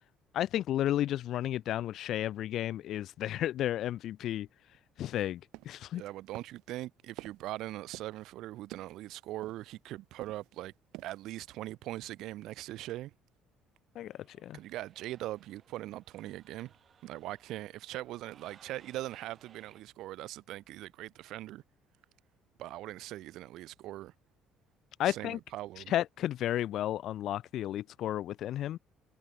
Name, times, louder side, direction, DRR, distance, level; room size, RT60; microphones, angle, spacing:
voice 1, 0.3-4.5 5.0-5.4 5.7-6.0 14.0-14.1 14.4-14.6 25.0-25.4 25.9-28.8, left 12 dB, 50° left, 0.4 m, -32 dB
sound 1, 5.5-5.9 6.3-6.7 7.2-7.5 7.9-8.3 8.7-9.0 9.4-9.8 10.2-10.6 10.8-11.3 11.7-11.8, right 20 dB, 85° right, 1.7 m, -49 dB
voice 2, 5.9-10.7 11.0-13.1 14.5-16.7 17.0-21.6 22.6-24.1 25.0-25.9, right 15 dB, 65° right, 1.5 m, -41 dB
sound 2, 14.1-19.8, right 7 dB, 30° right, 2.9 m, -63 dB
cardioid pair, 165°, 0 cm